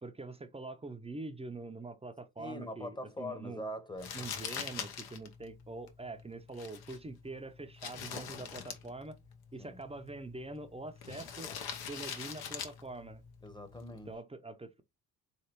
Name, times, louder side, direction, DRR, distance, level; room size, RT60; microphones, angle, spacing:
voice 1, 0.0-3.6 4.1-9.2 9.5-11.5 11.9-13.2 14.1-14.8, right 2 dB, 15° right, 0.7 m, -44 dB
voice 2, 2.4-4.2 9.6-9.8 13.4-14.1, left 1 dB, 10° left, 1.0 m, -42 dB
Crumpling crinkling, 4.0-14.1, left 7 dB, 70° left, 0.9 m, -45 dB
3.6 x 3.3 x 3.0 m
supercardioid pair, 60°, 39 cm